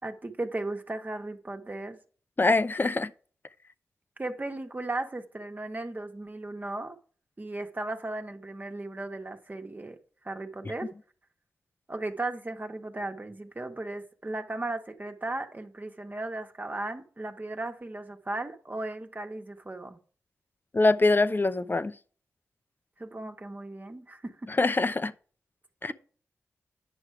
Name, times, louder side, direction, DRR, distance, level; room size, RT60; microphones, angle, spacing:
voice 1, 0.0-2.0 4.2-7.0 7.4-10.0 10.2-10.9 11.9-20.0 23.0-24.5, right 2 dB, 30° right, 1.6 m, -36 dB
voice 2, 2.4-3.1 20.7-21.9 24.5-25.1 25.8-25.9, left 2 dB, 35° left, 0.8 m, -24 dB
9.9 x 6.3 x 4.8 m
cardioid pair, 45°, 6 cm